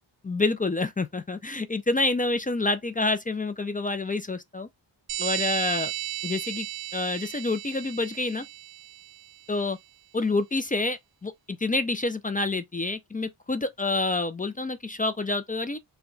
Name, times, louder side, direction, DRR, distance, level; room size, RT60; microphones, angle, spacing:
voice 1, 0.2-4.7 5.2-5.9 6.2-6.7 6.9-8.5 9.5-9.8 10.1-15.8, left 2 dB, 20° left, 0.3 m, -28 dB
sound 1, 5.1-9.4, right 13 dB, 80° right, 0.7 m, -34 dB
4.6 x 2.2 x 3.9 m
wide cardioid pair, 130°, 45 cm